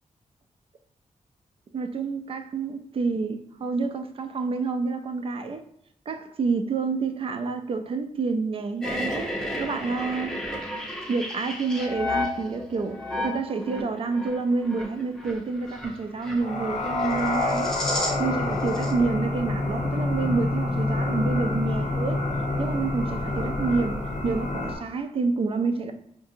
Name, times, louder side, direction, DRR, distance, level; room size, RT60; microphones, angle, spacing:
voice 1, 1.7-5.6 6.1-9.3 9.6-10.4 11.0-17.7 18.2-22.2 22.6-25.9, right 4 dB, 45° right, 0.4 m, -28 dB
sound 1, 8.8-18.4 18.6-18.9, left 1 dB, 5° left, 0.6 m, -33 dB
sound 2, 16.4-24.8, left 2 dB, 65° left, 0.7 m, -27 dB
4.8 x 2.6 x 2.7 m
wide cardioid pair, 160°, 13 cm